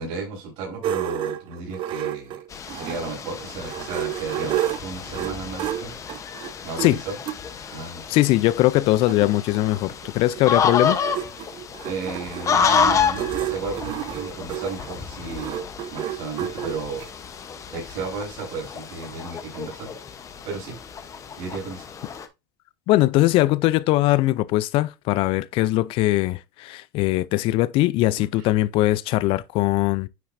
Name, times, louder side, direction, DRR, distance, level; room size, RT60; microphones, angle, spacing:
voice 1, 0.0-2.4 2.7-5.9 6.6-7.2 7.7-8.0 11.8-15.6 15.9-17.0 17.7-20.0 20.4-20.7 21.4-21.9 28.2-28.5, right 4 dB, 60° right, 4.4 m, -33 dB
sound 1, 0.8-3.1 3.5-7.4 8.2-8.3 8.6-8.7 8.8-17.1, right 12 dB, 45° right, 0.7 m, -31 dB
sound 2, 2.5-22.3, left 6 dB, 25° left, 0.9 m, -29 dB
voice 2, 8.1-11.0 22.9-30.1, left 17 dB, 50° left, 0.4 m, -21 dB
9.3 x 4.3 x 2.6 m
supercardioid pair, 120°, 11 cm